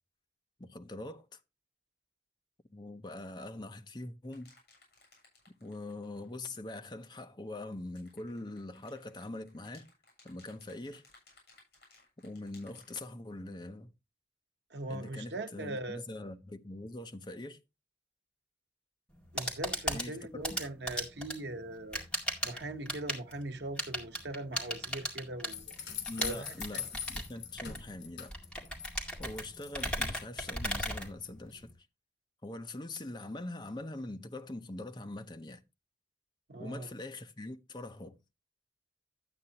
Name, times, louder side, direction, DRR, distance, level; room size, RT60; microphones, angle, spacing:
voice 1, 0.6-1.4 2.7-4.5 5.6-9.9 10.2-11.0 12.2-13.9 14.9-17.6 19.9-20.6 26.1-28.4 29.2-31.7 32.4-35.6 36.6-38.2, left 2 dB, 25° left, 0.7 m, -43 dB
sound 1, 4.3-6.3 7.8-13.1, left 3 dB, 65° left, 7.6 m, -62 dB
voice 2, 14.7-16.0 19.3-22.0 22.4-25.8 26.2-26.8 36.5-36.9, right 2 dB, 80° right, 1.0 m, -40 dB
sound 2, 19.1-31.7, equal, 5° left, 2.0 m, -38 dB
sound 3, 25.5-28.9 29.2-29.9, left 8 dB, 85° left, 3.3 m, -42 dB
11.5 x 8.7 x 2.9 m
head